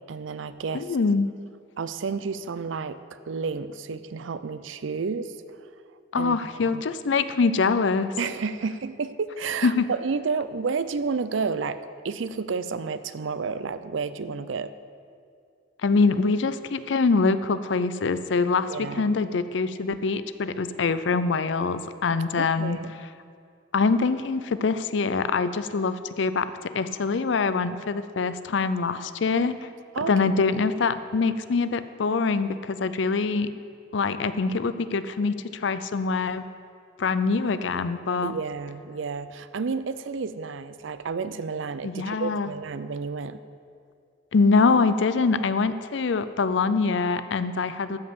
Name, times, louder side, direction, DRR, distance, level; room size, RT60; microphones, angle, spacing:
voice 1, 0.1-0.9 1.8-3.0 3.3-5.6 6.2-6.8 8.2-11.8 12.0-14.7 18.7-19.1 22.4-22.9 29.9-30.1 38.2-43.4, right 5 dB, 80° right, 13 dB, 0.5 m, -31 dB
voice 2, 0.7-1.3 6.1-8.1 9.6-9.9 15.8-22.8 23.7-26.5 26.7-29.5 30.1-33.5 33.9-36.4 37.0-38.3 41.8-42.5 44.3-48.0, left 4 dB, 70° left, 13 dB, 0.5 m, -24 dB
13.0 x 5.3 x 7.9 m, 2.3 s
head